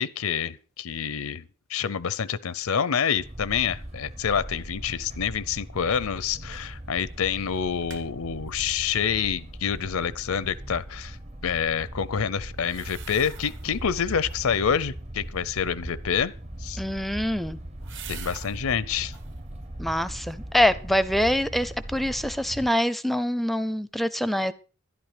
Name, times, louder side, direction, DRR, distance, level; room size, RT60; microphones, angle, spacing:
voice 1, 0.0-1.4 1.7-11.2 11.4-16.3 16.6-16.8 18.1-19.1, left 7 dB, 85° left, 0.6 m, -27 dB
sound 1, 3.2-22.7, right 1 dB, 30° right, 0.9 m, -39 dB
sound 2, 6.5-6.8 7.1-7.2 7.6-8.1 12.6-13.8 14.2-14.7 16.6-18.6 19.0-19.4 19.9-20.6 20.9-21.0, right 8 dB, 60° right, 1.9 m, -46 dB
voice 2, 16.8-17.6 19.8-24.5, left 1 dB, ahead, 0.5 m, -25 dB
12.0 x 11.0 x 5.0 m
head